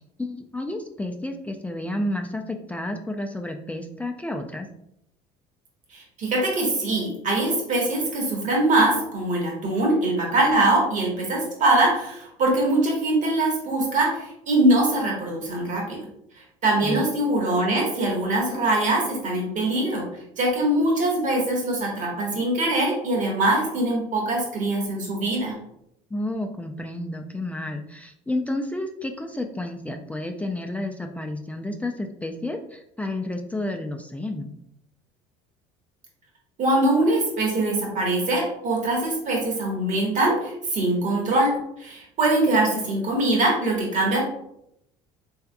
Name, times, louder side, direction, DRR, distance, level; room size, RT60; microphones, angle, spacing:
voice 1, 0.0-4.7 16.8-17.1 26.1-34.5, left 1 dB, 10° left, 3 dB, 0.3 m, -31 dB
voice 2, 5.9-16.0 16.6-20.0 20.4-25.5 36.6-44.2, right 2 dB, 50° right, -2 dB, 1.4 m, -23 dB
3.4 x 3.4 x 2.3 m, 0.77 s
supercardioid pair, 80°, 16 cm